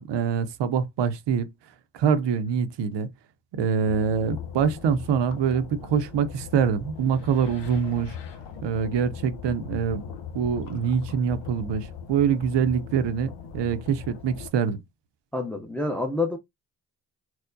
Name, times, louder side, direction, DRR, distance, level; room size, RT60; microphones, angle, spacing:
voice 1, 0.0-1.5 1.9-3.1 3.5-8.2 8.6-10.0 10.3-14.8, right 7 dB, 90° right, 0.6 m, -25 dB
sound 1, 3.9-14.5, left 7 dB, 85° left, 0.7 m, -39 dB
voice 2, 15.3-16.4, left 2 dB, 5° left, 0.6 m, -27 dB
4.5 x 2.1 x 2.6 m
cardioid pair, 75°, 41 cm